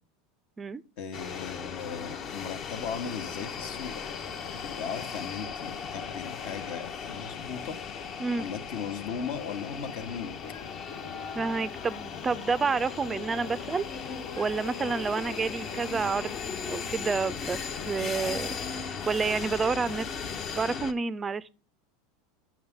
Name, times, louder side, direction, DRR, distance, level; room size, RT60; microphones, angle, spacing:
voice 1, 1.0-3.9 4.5-7.8 8.4-10.3, left 6 dB, 65° left, 1.1 m, -37 dB
sound 1, 1.1-20.9, left 6 dB, 40° left, 0.8 m, -37 dB
sound 2, 2.8-18.2, left 5 dB, 90° left, 1.1 m, -49 dB
voice 2, 11.3-13.8 14.4-20.1 20.5-21.5, right 5 dB, 20° right, 0.4 m, -29 dB
8.6 x 6.0 x 3.6 m
supercardioid pair, 115°, 0 cm